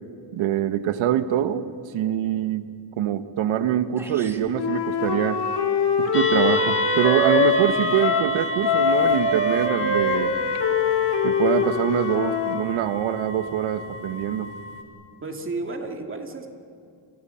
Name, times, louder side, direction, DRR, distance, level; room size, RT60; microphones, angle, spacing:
voice 1, 0.3-1.7 1.9-2.7 3.0-5.4 6.0-10.3 11.2-14.5, right 11 dB, 75° right, 10 dB, 1.5 m, -24 dB
sound 1, 3.6-3.7 4.0-4.5, right 1 dB, 5° right, 1.7 m, -42 dB
Wind instrument woodwind instrument, 4.5-8.3 8.6-12.6, left 5 dB, 55° left, 2.6 m, -23 dB
sound 2, 6.1-14.8, left 1 dB, 25° left, 3.9 m, -30 dB
voice 2, 15.2-16.5, right 3 dB, 25° right, 3 dB, 2.4 m, -32 dB
30.0 x 29.0 x 5.8 m, 2.4 s
cardioid pair, 155°, 48 cm